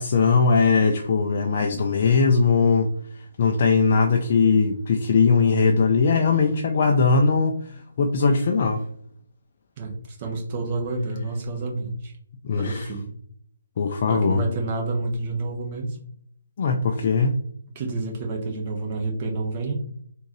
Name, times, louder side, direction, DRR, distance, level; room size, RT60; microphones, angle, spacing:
voice 1, 0.0-2.9 3.1-8.8 12.4-12.9 13.8-14.4 16.6-17.4, left 4 dB, 45° left, 2 dB, 0.4 m, -20 dB
voice 2, 9.8-12.1 12.6-13.1 14.1-16.0 17.7-19.7, right 3 dB, 35° right, 1 dB, 1.0 m, -29 dB
3.7 x 2.6 x 3.1 m, 0.65 s
figure-of-eight pair, 140°, 0 cm